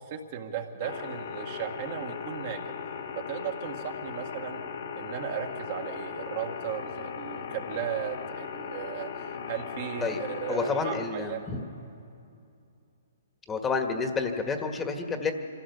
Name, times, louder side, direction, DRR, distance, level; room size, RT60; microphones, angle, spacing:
voice 1, 0.1-2.6 3.3-4.6 4.9-11.5, right 9 dB, 45° right, 3 dB, 2.0 m, -36 dB
sound 1, 0.8-11.1, left 6 dB, 65° left, 1.8 m, -38 dB
voice 2, 10.5-11.6 13.5-15.3, left 4 dB, 15° left, 5 dB, 1.7 m, -29 dB
25.5 x 15.5 x 6.9 m, 2.6 s
hypercardioid pair, 135°, 0 cm